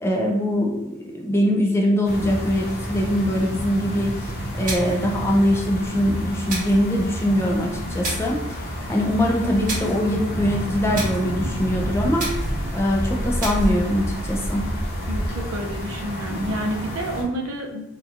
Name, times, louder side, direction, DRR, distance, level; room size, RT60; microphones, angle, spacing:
voice 1, 0.0-4.3 4.6-12.3 12.7-14.7, equal, 10° left, -1 dB, 0.3 m, -22 dB
sound 1, 2.0-17.2, equal, 50° left, 0.8 m, -29 dB
sound 2, 4.6-5.1 6.5-6.9 8.0-8.4 9.7-10.0 10.9-11.3 12.2-12.6 13.4-13.8, right 2 dB, 40° right, 1.1 m, -31 dB
voice 2, 15.1-17.8, right 1 dB, 80° right, 2 dB, 0.4 m, -29 dB
2.8 x 2.2 x 2.4 m, 0.88 s
head